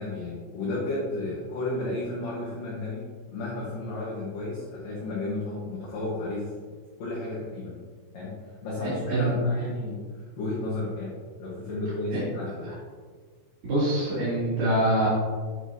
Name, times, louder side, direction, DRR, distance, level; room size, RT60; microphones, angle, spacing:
voice 1, 0.0-6.5 7.0-7.8 8.1-8.3 8.6-12.8, left 2 dB, 65° left, -7 dB, 2.2 m, -33 dB
voice 2, 8.8-9.4 12.1-12.2 12.6-12.7 13.6-15.1, right 1 dB, 45° right, -12 dB, 2.7 m, -25 dB
8.3 x 6.3 x 2.8 m, 1.5 s
omnidirectional pair, 5.7 m